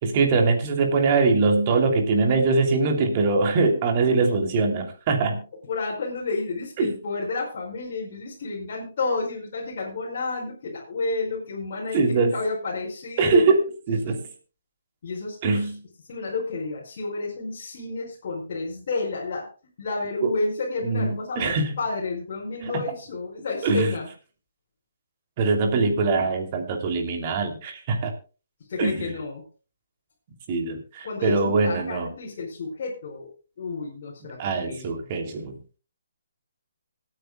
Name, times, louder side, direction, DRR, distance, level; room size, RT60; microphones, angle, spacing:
voice 1, 0.0-5.4 6.8-6.9 11.9-12.3 13.2-14.3 15.4-15.8 20.2-20.3 20.8-21.8 23.6-23.9 25.4-28.1 28.8-29.1 30.5-32.1 34.4-35.8, right 3 dB, 30° right, 4 dB, 2.8 m, -22 dB
voice 2, 5.6-13.5 15.0-15.7 16.1-19.5 19.8-24.1 28.7-29.4 31.0-33.3 33.6-35.1, left 3 dB, 45° left, -5 dB, 4.9 m, -31 dB
25.5 x 9.2 x 2.3 m, 0.34 s
hypercardioid pair, 160°, 0 cm